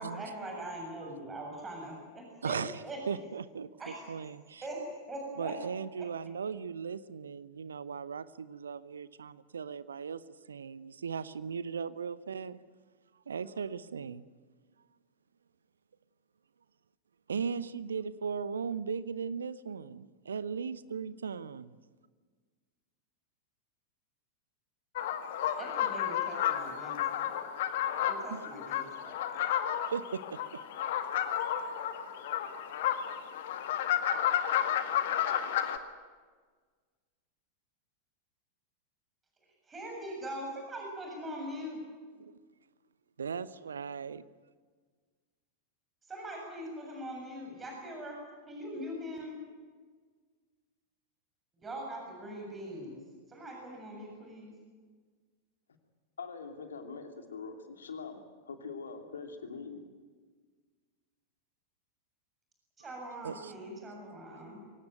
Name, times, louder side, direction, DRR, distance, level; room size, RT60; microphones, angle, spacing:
voice 1, 0.0-2.6 2.8-3.0 3.8-4.0 4.6-4.8 5.1-5.5 6.0-6.1 25.6-27.4 28.0-29.5 39.7-41.8 46.1-48.2 48.5-49.3 51.6-53.0 53.3-54.5 62.8-64.7, right 1 dB, 15° right, 0 dB, 7.3 m, -42 dB
voice 2, 2.4-2.8 3.1-3.7 4.1-4.6 5.4-10.2 10.5-12.6 13.3-14.2 17.3-21.7 28.3-28.4 28.9-29.0 29.9-30.6 42.2-42.4 43.2-44.2 63.2-63.5, right 6 dB, 70° right, 17 dB, 0.8 m, -37 dB
sound 1, 25.0-35.8, left 10 dB, 55° left, 1.7 m, -32 dB
voice 3, 56.2-59.8, left 5 dB, 70° left, 5 dB, 2.9 m, -43 dB
24.0 x 17.5 x 9.2 m, 1.5 s
figure-of-eight pair, 90°, 0 cm